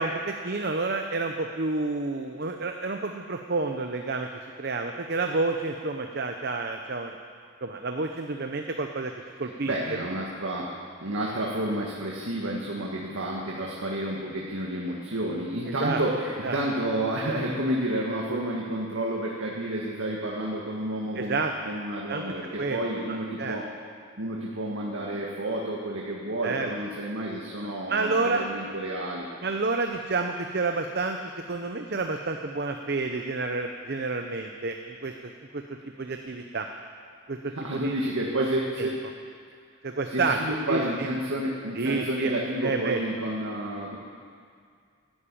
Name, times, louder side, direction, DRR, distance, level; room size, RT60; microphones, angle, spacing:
voice 1, 0.0-7.1 7.6-9.1 9.4-9.7 15.8-16.0 16.4-16.6 21.1-21.7 22.1-22.2 22.6-22.8 23.1-23.6 26.4-26.7 27.9-28.4 29.4-35.6 36.0-36.7 37.3-37.9 38.8-38.9 39.8-40.4 40.7-41.1 41.8-42.3 42.6-43.0, right 3 dB, 50° right, 4 dB, 0.8 m, -29 dB
voice 2, 9.7-10.7 11.0-23.6 24.2-29.3 37.5-39.0 40.1-44.0, right 1 dB, 90° right, -3 dB, 1.9 m, -30 dB
13.0 x 11.5 x 8.7 m, 2.1 s
head